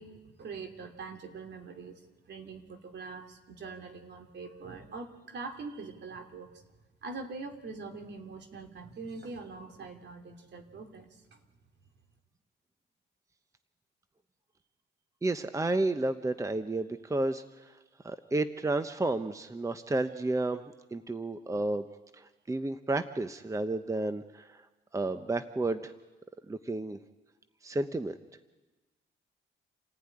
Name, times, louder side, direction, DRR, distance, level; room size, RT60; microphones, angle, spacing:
voice 1, 0.0-2.0 2.3-6.6 7.0-11.4, right 4 dB, 60° right, 5 dB, 3.0 m, -43 dB
voice 2, 15.2-17.7 18.0-20.6 20.9-21.9 22.2-24.6 24.9-25.9 26.5-27.0 27.6-28.2, right 2 dB, 15° right, 10 dB, 0.9 m, -31 dB
28.0 x 15.0 x 9.9 m, 1.2 s
cardioid pair, 90°, 20 cm